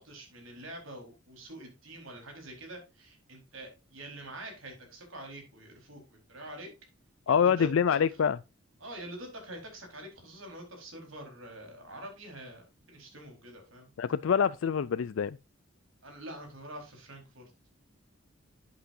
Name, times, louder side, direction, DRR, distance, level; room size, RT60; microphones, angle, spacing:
voice 1, 0.0-6.7 7.3-8.0 8.8-13.9 16.0-17.4, right 1 dB, 85° right, 4.5 m, -46 dB
voice 2, 7.3-8.4 14.0-15.4, left 7 dB, 80° left, 0.4 m, -25 dB
11.5 x 8.1 x 2.7 m
head